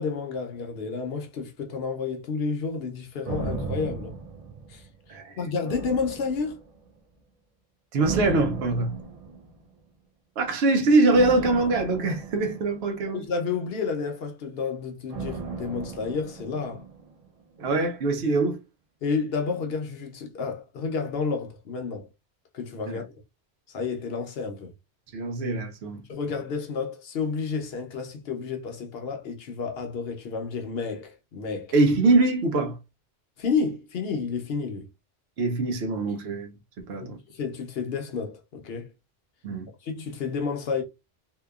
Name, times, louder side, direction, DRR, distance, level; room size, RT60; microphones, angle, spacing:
voice 1, 0.0-4.1 4.7-4.8 5.4-6.6 13.1-16.8 19.0-22.1 22.5-23.1 23.7-24.7 26.1-31.7 33.4-34.9 37.3-38.9 39.8-40.8, left 5 dB, 70° left, 0.8 m, -30 dB
sound 1, 3.2-5.2 5.7-6.9 8.0-9.7 11.1-13.5 15.1-17.3 17.6-17.7, right 4 dB, 50° right, 0.5 m, -36 dB
voice 2, 7.9-9.0 10.4-13.2 17.6-18.6 22.9-23.0 25.1-26.0 31.7-32.8 35.4-37.2 39.4-39.7, right 2 dB, 75° right, 0.8 m, -23 dB
2.8 x 2.2 x 2.3 m
omnidirectional pair, 1.1 m